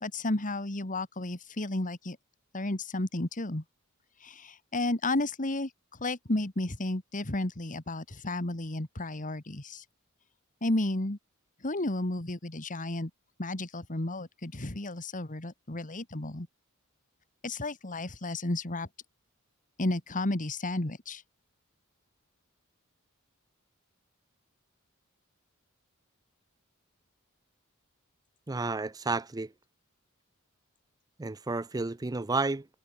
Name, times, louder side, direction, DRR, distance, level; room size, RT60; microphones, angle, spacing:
voice 1, 0.0-2.2 2.5-3.6 4.2-5.7 6.0-9.8 10.6-11.2 11.6-13.1 13.4-16.5 17.4-18.9 19.8-21.2, left 2 dB, 40° left, 2.0 m, -32 dB
voice 2, 28.5-29.5 31.2-32.7, right 3 dB, 15° right, 0.5 m, -31 dB
head